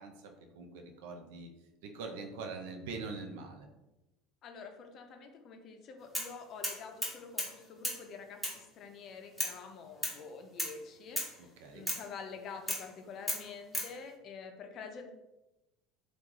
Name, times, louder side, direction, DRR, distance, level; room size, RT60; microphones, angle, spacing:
voice 1, 0.0-1.5 1.8-3.7 11.6-11.9, right 4 dB, 80° right, 4 dB, 0.5 m, -43 dB
voice 2, 4.4-15.1, left 5 dB, 50° left, 5 dB, 0.6 m, -47 dB
sound 1, 6.1-6.3 6.6-7.5 7.8-8.0 8.4-8.6 9.4-9.6 10.0-10.2 10.6-10.8 11.2-11.4 11.9-12.1 12.7-12.9 13.3-13.9, left 1 dB, ahead, 1.0 m, -35 dB
3.0 x 2.4 x 3.7 m, 0.98 s
supercardioid pair, 100°, 0 cm